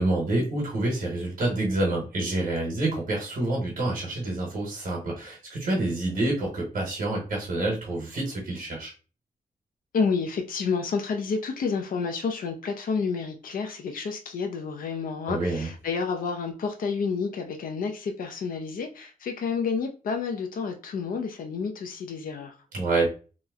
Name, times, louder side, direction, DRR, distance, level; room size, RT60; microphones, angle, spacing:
voice 1, 0.0-8.9 15.3-15.7 22.7-23.1, right 2 dB, 65° right, 1.2 m, -27 dB
voice 2, 9.9-22.6, left 5 dB, 70° left, 0.5 m, -30 dB
3.0 x 2.0 x 3.5 m
wide cardioid pair, 110°, 15 cm